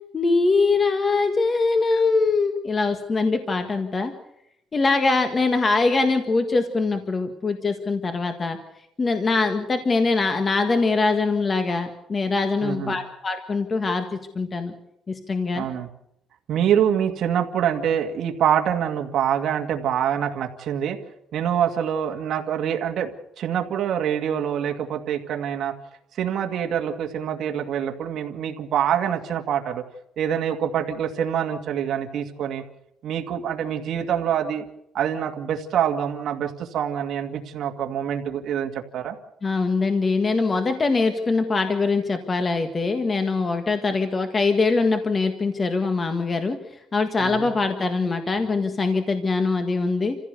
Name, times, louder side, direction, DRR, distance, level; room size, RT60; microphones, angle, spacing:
voice 1, 0.1-4.1 4.7-8.6 9.0-14.7 15.1-15.7 39.4-46.6 46.9-50.2, left 3 dB, 25° left, 7 dB, 1.7 m, -23 dB
voice 2, 12.6-13.0 15.5-15.9 16.5-21.0 21.3-23.1 23.4-25.8 26.1-29.8 30.2-32.6 33.0-34.6 34.9-39.2 47.2-47.5, right 9 dB, 60° right, 4 dB, 2.1 m, -25 dB
27.5 x 15.5 x 6.8 m, 0.79 s
cardioid pair, 135°, 0 cm